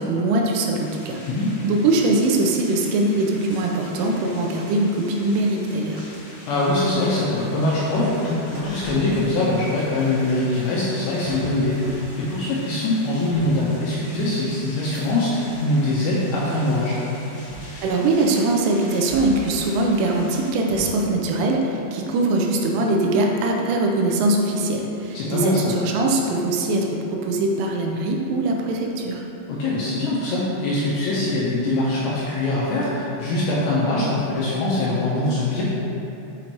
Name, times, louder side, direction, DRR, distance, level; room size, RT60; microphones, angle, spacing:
voice 1, 0.0-1.2 1.6-6.0 17.8-29.2, right 2 dB, 85° right, 0 dB, 3.0 m, -22 dB
sound 1, 0.7-20.5, left 1 dB, 60° left, 2.1 m, -44 dB
voice 2, 6.5-17.0 25.1-25.6 29.5-35.6, left 2 dB, 80° left, -6 dB, 2.6 m, -23 dB
sound 2, 6.6-15.7 16.1-16.8 17.5-18.6 19.1-21.2, right 1 dB, 65° right, 2.7 m, -41 dB
7.6 x 5.3 x 2.9 m, 2.8 s
omnidirectional pair, 5.7 m